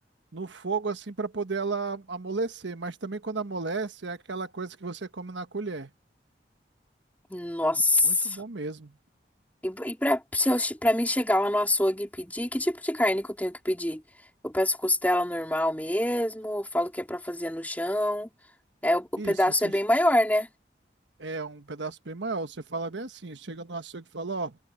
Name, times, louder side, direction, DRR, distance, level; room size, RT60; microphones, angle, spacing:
voice 1, 0.3-5.9 8.0-8.9 19.2-19.4 19.6-19.7 21.2-24.6, right 3 dB, 80° right, 1.3 m, -34 dB
voice 2, 7.3-8.4 9.6-14.0 14.4-18.3 18.8-20.5, left 1 dB, 10° left, 3.7 m, -26 dB
head